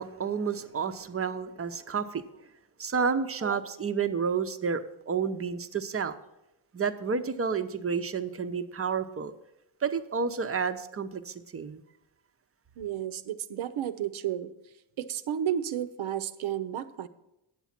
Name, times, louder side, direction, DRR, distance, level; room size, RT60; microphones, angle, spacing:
voice 1, 0.0-2.2 2.8-6.2 6.7-9.3 9.8-11.8, right 6 dB, 30° right, 10 dB, 0.6 m, -30 dB
voice 2, 12.8-14.5 15.0-17.1, right 10 dB, 70° right, 12 dB, 0.7 m, -32 dB
9.5 x 7.1 x 5.8 m, 0.92 s
cardioid pair, 85°, 50 cm